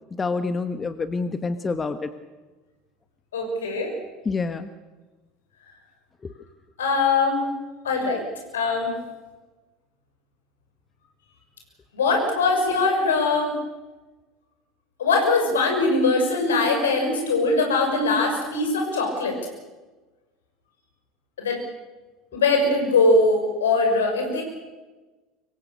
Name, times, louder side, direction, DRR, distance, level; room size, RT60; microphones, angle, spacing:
voice 1, 0.2-2.1 4.2-4.7 6.2-6.3, left 4 dB, 20° left, 10 dB, 1.3 m, -27 dB
voice 2, 3.3-3.9 6.8-7.5 7.8-8.2 8.5-8.9 11.9-13.5 15.0-19.3 21.4-21.6 22.3-24.4, left 3 dB, 75° left, 2 dB, 6.2 m, -21 dB
25.0 x 23.0 x 6.8 m, 1.2 s
figure-of-eight pair, 70°, 0 cm